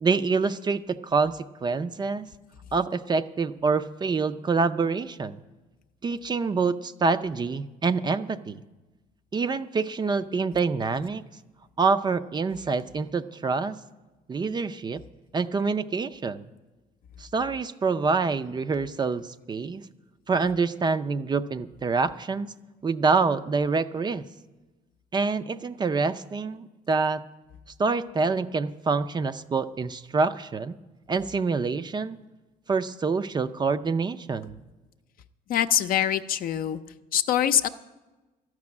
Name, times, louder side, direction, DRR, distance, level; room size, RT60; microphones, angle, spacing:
voice 1, 0.0-2.3 2.7-5.4 6.0-8.6 9.3-11.2 11.8-13.8 14.3-15.0 15.3-16.4 17.2-19.8 20.3-22.5 22.8-24.2 25.1-27.2 27.8-30.8 31.1-32.2 32.7-34.6, right 4 dB, 25° right, 12 dB, 0.4 m, -26 dB
voice 2, 35.5-36.8 37.1-37.7, left 10 dB, 60° left, 10 dB, 0.5 m, -24 dB
13.0 x 6.1 x 9.6 m, 1.1 s
cardioid pair, 110°, 17 cm